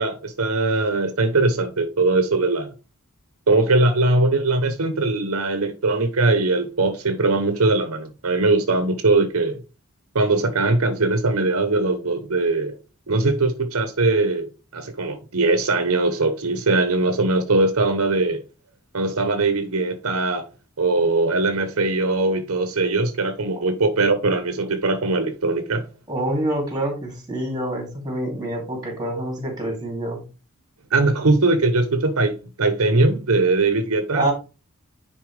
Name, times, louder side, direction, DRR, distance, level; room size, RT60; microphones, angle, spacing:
voice 1, 0.0-2.7 3.5-9.6 10.1-12.7 13.1-14.5 14.7-18.4 18.9-20.4 20.8-25.8 30.9-34.3, right 3 dB, 70° right, 0.9 m, -21 dB
voice 2, 26.1-30.2 34.1-34.3, right 1 dB, 20° right, 2.9 m, -26 dB
10.0 x 4.1 x 3.3 m
head